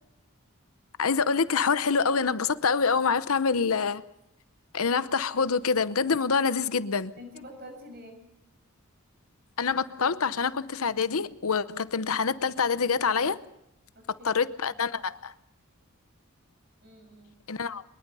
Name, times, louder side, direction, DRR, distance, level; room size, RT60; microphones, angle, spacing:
voice 1, 1.0-4.0 4.7-7.1 9.6-13.4 14.2-15.3 17.5-17.8, left 5 dB, 75° left, 0.8 m, -26 dB
voice 2, 7.2-8.2 13.9-14.4 16.8-17.3, left 1 dB, 45° right, 6.4 m, -46 dB
22.5 x 21.0 x 5.5 m
head